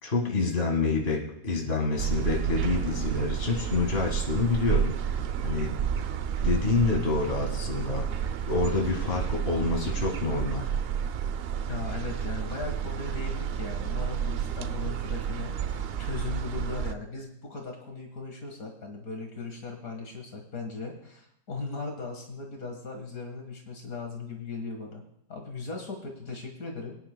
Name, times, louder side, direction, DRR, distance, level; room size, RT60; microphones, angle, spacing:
voice 1, 0.0-4.9 5.4-5.8 6.4-8.1 8.5-10.7, left 3 dB, 40° left, 0 dB, 2.1 m, -27 dB
sound 1, 2.0-16.9, right 8 dB, 65° right, 0.6 m, -30 dB
voice 2, 11.7-25.0 25.3-27.0, left 4 dB, 70° left, 2 dB, 2.1 m, -38 dB
23.0 x 10.0 x 2.2 m, 0.74 s
omnidirectional pair, 1.5 m